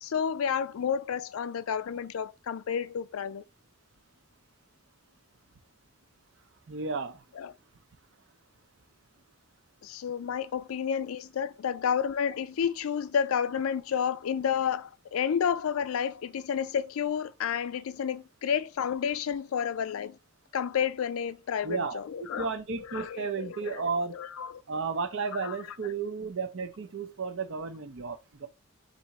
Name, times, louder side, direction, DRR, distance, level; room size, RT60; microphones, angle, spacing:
voice 1, 0.0-3.4 7.4-7.5 9.8-20.2 20.5-22.5 22.9-24.6 25.4-25.5, left 7 dB, 75° left, 0.4 m, -30 dB
voice 2, 6.7-7.2 21.6-24.2 24.7-28.5, right 4 dB, 60° right, 0.6 m, -33 dB
3.4 x 2.9 x 4.1 m
head